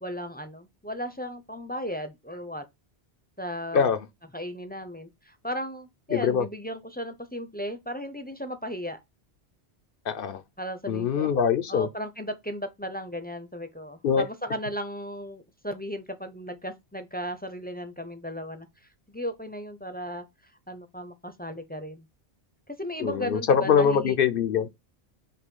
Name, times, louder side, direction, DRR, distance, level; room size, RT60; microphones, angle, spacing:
voice 1, 0.0-2.6 3.4-3.9 4.3-9.0 10.6-11.3 11.7-18.7 19.1-20.3 20.7-22.1 22.7-24.1, equal, 10° left, 0.5 m, -35 dB
voice 2, 6.1-6.5 10.1-10.4 10.9-11.9 14.0-14.2 23.0-24.7, left 7 dB, 65° left, 0.7 m, -23 dB
5.6 x 2.2 x 3.7 m
omnidirectional pair, 1.1 m